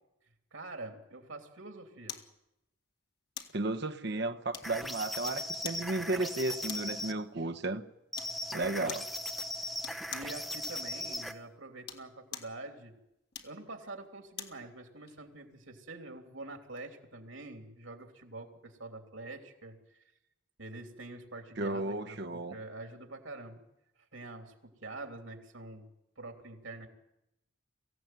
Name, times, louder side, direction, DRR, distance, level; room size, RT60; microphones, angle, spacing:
voice 1, 0.5-2.2 8.3-9.0 9.6-9.8 10.1-12.9 13.4-20.0 20.6-23.6 24.1-25.9 26.2-26.9, right 2 dB, 75° right, 3.2 m, -46 dB
sound 1, 2.1-2.3 3.4-3.6 4.5-5.0 5.6-5.9 6.7-7.0 8.1-8.4 8.9-9.1 9.8-10.4 11.7-12.6 13.3-14.6 15.1-15.2, left 8 dB, 50° left, 2.0 m, -44 dB
voice 2, 3.5-7.8 8.5-9.0 21.6-22.6, right 2 dB, 55° right, 1.1 m, -34 dB
sound 2, 4.6-7.2 8.1-11.4, left 1 dB, ahead, 0.8 m, -38 dB
24.0 x 16.5 x 9.3 m
head